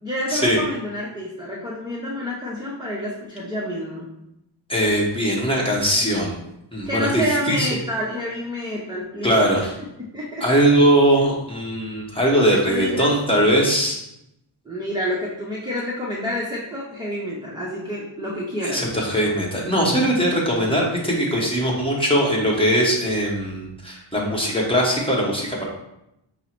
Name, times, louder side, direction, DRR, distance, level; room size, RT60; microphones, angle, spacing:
voice 1, 0.0-4.1 6.9-9.7 10.0-10.4 12.5-13.1 14.7-18.8, equal, 10° right, -6 dB, 0.6 m, -28 dB
voice 2, 4.7-6.4 6.7-7.7 9.2-9.7 10.4-14.0 18.6-25.6, equal, 10° left, -3 dB, 1.0 m, -20 dB
5.3 x 2.0 x 4.4 m, 0.84 s
wide cardioid pair, 115°, 48 cm